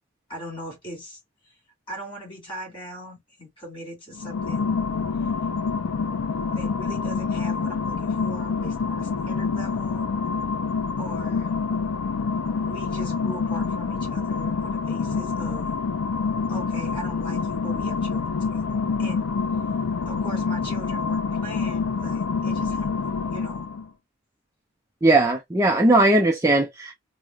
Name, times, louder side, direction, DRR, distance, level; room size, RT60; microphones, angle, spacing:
voice 1, 0.3-1.6 1.9-4.9 5.2-5.3 6.5-10.1 11.0-11.6 12.6-15.7 16.5-18.7 19.0-19.3 20.1-22.9 23.3-23.7, right 1 dB, 25° left, 2.8 m, -40 dB
sound 1, 4.1-23.9, left 5 dB, 90° left, 0.5 m, -27 dB
voice 2, 25.0-26.9, right 2 dB, 15° right, 0.4 m, -18 dB
4.6 x 2.1 x 2.4 m
head